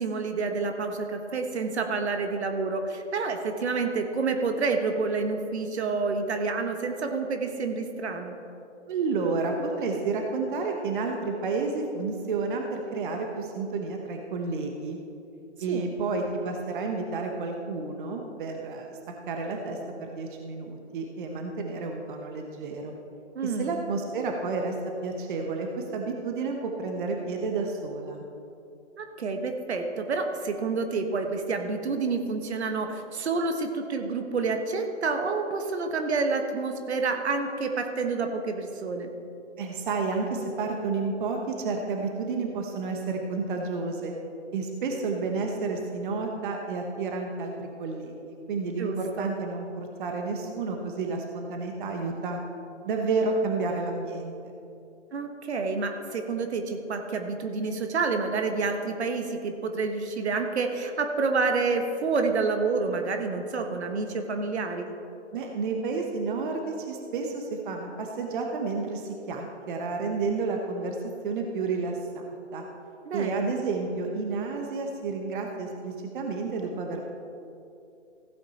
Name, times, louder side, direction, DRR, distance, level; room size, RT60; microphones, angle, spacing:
voice 1, 0.0-8.4 15.7-15.9 23.3-23.8 29.0-39.1 48.8-49.3 55.1-64.9 73.0-73.5, right 4 dB, 65° right, 5 dB, 1.3 m, -28 dB
voice 2, 8.9-15.0 15.6-19.0 19.3-22.9 23.4-24.7 25.0-28.2 39.6-44.1 44.5-52.4 52.8-54.3 65.3-71.0 71.2-72.7 73.1-77.1, right 4 dB, 45° right, 3 dB, 1.1 m, -31 dB
15.5 x 8.5 x 4.2 m, 2.7 s
hypercardioid pair, 145°, 36 cm